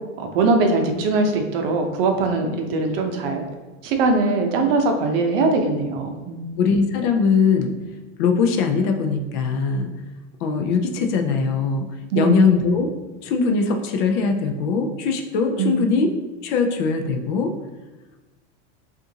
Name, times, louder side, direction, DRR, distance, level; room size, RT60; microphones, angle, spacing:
voice 1, 0.2-3.5 3.8-6.7 12.1-12.6 15.6-15.9, right 3 dB, 55° right, 4 dB, 0.6 m, -21 dB
voice 2, 6.6-7.8 8.2-9.9 10.4-11.9 12.1-12.9 13.2-16.1 16.4-17.5, left 5 dB, 45° left, 5 dB, 0.4 m, -21 dB
5.3 x 2.5 x 2.7 m, 1.2 s
supercardioid pair, 160°, 35 cm